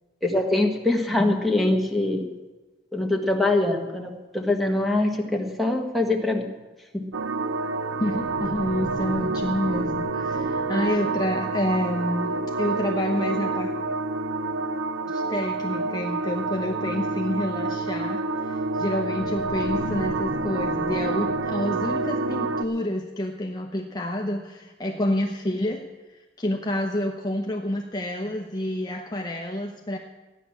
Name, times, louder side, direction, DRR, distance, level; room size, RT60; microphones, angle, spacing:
voice 1, 0.2-2.3 2.9-6.5 6.9-7.1 10.7-10.9, left 2 dB, ahead, 0 dB, 1.5 m, -23 dB
sound 1, 7.1-22.6, right 3 dB, 80° right, 0.7 m, -28 dB
voice 2, 8.0-13.7 15.1-25.8 26.1-30.0, left 1 dB, 20° left, 1 dB, 0.9 m, -28 dB
14.5 x 10.5 x 7.2 m, 1.2 s
head